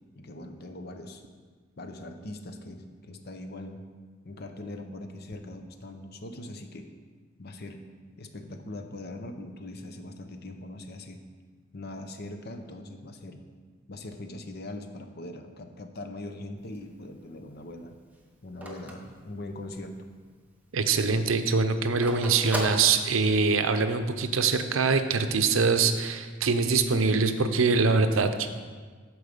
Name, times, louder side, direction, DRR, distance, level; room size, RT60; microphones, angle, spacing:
voice 1, 0.1-1.2 1.8-3.8 4.2-6.9 7.4-7.8 8.2-11.2 11.7-13.4 13.9-18.0 18.4-20.0, left 1 dB, 50° left, 6 dB, 0.7 m, -41 dB
Telephone, 16.6-20.0 20.4-20.5 20.7-23.6, right 1 dB, 10° right, 0.9 m, -37 dB
voice 2, 20.7-28.5, right 4 dB, 80° right, 9 dB, 0.6 m, -24 dB
8.6 x 4.7 x 6.6 m, 1.5 s
head